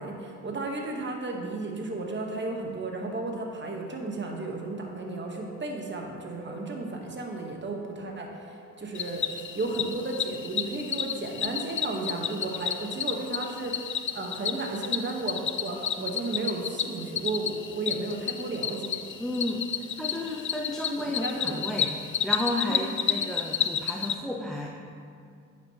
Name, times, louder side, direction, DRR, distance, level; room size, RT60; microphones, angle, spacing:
voice 1, 0.0-19.0 21.0-21.6 22.7-22.8, right 2 dB, 30° right, 1 dB, 1.4 m, -34 dB
sound 1, 4.1-14.0, right 1 dB, 70° right, 1.7 m, -52 dB
Cricket, 8.9-24.1, left 8 dB, 35° left, 0.5 m, -31 dB
voice 2, 19.2-21.9 22.2-24.7, left 1 dB, ahead, -1 dB, 0.9 m, -32 dB
9.7 x 6.4 x 3.0 m, 2.3 s
hypercardioid pair, 45°, 36 cm